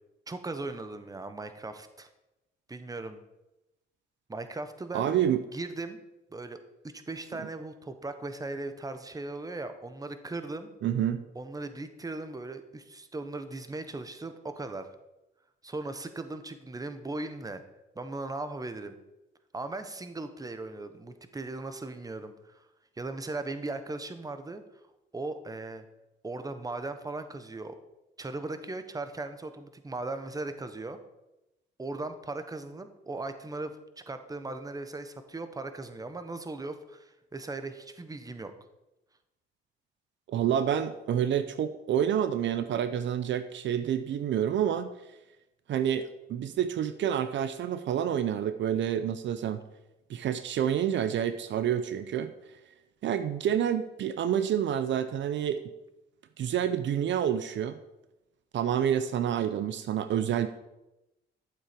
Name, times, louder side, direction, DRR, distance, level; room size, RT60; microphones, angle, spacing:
voice 1, 0.3-2.1 2.7-3.2 4.3-5.2 5.5-6.0 6.3-10.7 11.3-14.9 15.6-17.6 17.9-19.0 19.5-22.6 23.0-24.6 25.1-25.8 26.2-27.8 28.2-31.0 31.8-33.8 34.1-38.5, right 2 dB, 20° right, 9 dB, 1.1 m, -38 dB
voice 2, 4.9-5.4 10.8-11.2 40.3-44.9 45.7-49.6 50.1-52.3 53.0-55.6 56.4-57.8 58.5-60.5, right 9 dB, 65° right, 11 dB, 0.7 m, -28 dB
12.0 x 7.5 x 5.2 m, 0.97 s
cardioid pair, 90°, 20 cm